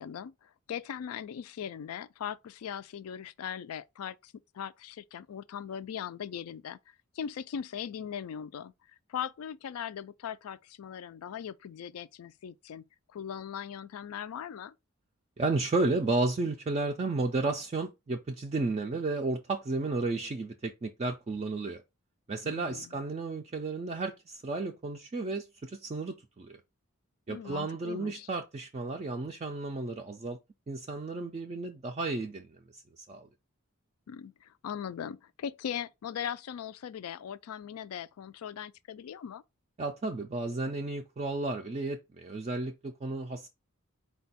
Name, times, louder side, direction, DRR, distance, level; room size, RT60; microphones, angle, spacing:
voice 1, 0.0-6.8 7.1-8.7 9.1-12.9 13.1-14.7 22.4-22.9 27.3-28.3 34.1-39.4, left 8 dB, 85° left, 0.3 m, -39 dB
voice 2, 15.4-21.8 22.3-26.6 27.3-30.4 30.7-33.3 39.8-43.5, right 3 dB, 30° right, 0.3 m, -33 dB
4.2 x 2.3 x 4.0 m
head